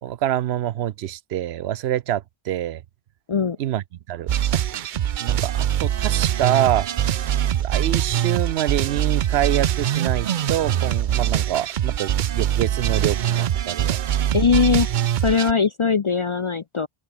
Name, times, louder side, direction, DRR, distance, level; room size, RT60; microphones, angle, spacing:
voice 1, 0.0-2.8 3.6-3.8 4.1-4.6 5.2-14.0, right 12 dB, 85° right, 0.9 m, -26 dB
sound 1, 4.3-15.5, right 10 dB, 60° right, 0.6 m, -23 dB
voice 2, 14.3-14.9 15.2-16.9, left 6 dB, 45° left, 0.4 m, -20 dB
open air
omnidirectional pair, 1.0 m